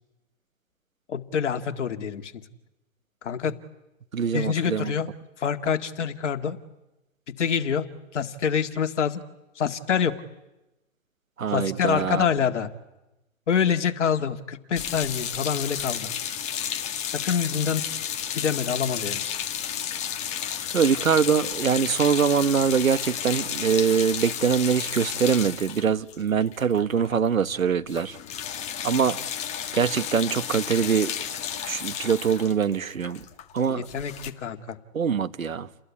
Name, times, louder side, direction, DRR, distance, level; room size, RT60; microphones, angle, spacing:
voice 1, 1.1-2.3 3.2-3.5 4.3-5.1 5.4-6.6 7.4-7.9 8.1-9.2 9.6-10.2 11.5-12.7 13.5-16.1 17.1-17.8 18.3-19.4 33.7-34.8, left 7 dB, 60° left, 2.1 m, -26 dB
voice 2, 4.1-4.9 11.4-12.2 20.7-28.2 28.8-29.2 29.7-31.1 31.7-33.2 33.5-33.8 34.9-35.7, right 7 dB, 85° right, 1.3 m, -23 dB
sound 1, 14.8-27.1 27.4-27.6 27.9-34.3, left 9 dB, 15° left, 1.5 m, -32 dB
29.5 x 20.5 x 9.7 m
hypercardioid pair, 135°, 40 cm